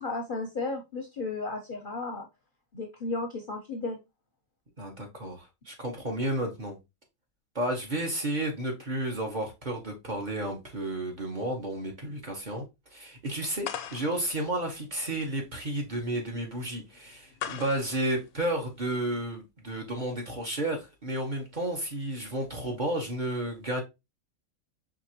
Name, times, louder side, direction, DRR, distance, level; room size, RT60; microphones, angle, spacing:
voice 1, 0.0-2.3 2.7-4.0, left 3 dB, 45° left, 0.7 m, -34 dB
voice 2, 4.8-6.8 7.5-12.7 12.9-23.8, right 1 dB, 35° right, 1.0 m, -32 dB
sound 1, 13.6-19.3, left 9 dB, 80° left, 1.0 m, -42 dB
4.8 x 3.3 x 2.9 m
omnidirectional pair, 1.5 m